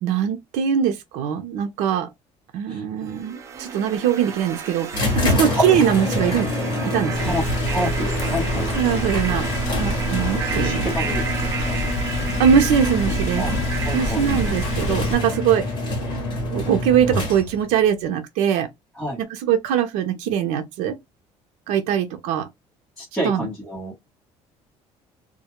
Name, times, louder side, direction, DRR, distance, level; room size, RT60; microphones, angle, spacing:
voice 1, 0.0-2.1 2.5-6.5 6.9-7.4 8.7-9.5 9.8-10.9 12.4-13.4 13.9-15.6 16.4-18.7 19.4-21.0 21.7-22.5 23.2-23.5, right 8 dB, 80° right, 0.6 m, -22 dB
sound 1, 3.1-16.0, right 5 dB, 25° right, 0.4 m, -32 dB
sound 2, 4.9-17.7, left 2 dB, 40° left, 1.1 m, -27 dB
voice 2, 5.2-5.6 7.2-8.7 10.5-11.3 11.7-11.8 13.4-13.5 13.8-14.3 18.9-19.2 23.0-24.1, equal, 5° left, 0.9 m, -28 dB
Rain, 7.1-15.1, left 1 dB, 60° left, 0.5 m, -28 dB
2.2 x 2.1 x 2.9 m
cardioid pair, 170°, 12 cm